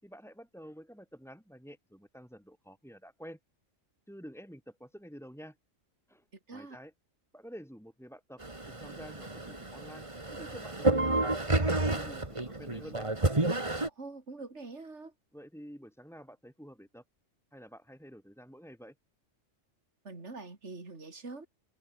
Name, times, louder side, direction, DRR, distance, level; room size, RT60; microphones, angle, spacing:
voice 1, 0.0-3.4 4.1-5.6 6.1-6.3 6.5-6.9 7.3-8.4 8.7-10.1 10.3-11.2 11.5-12.3 12.6-13.1 15.3-17.0 17.5-18.9, equal, ahead, 7.1 m, -49 dB
sound 1, 8.4-13.9, right 2 dB, 25° right, 2.3 m, -30 dB
voice 2, 13.9-15.1 20.0-21.5, right 3 dB, 60° right, 3.7 m, -44 dB
open air
omnidirectional pair, 1.3 m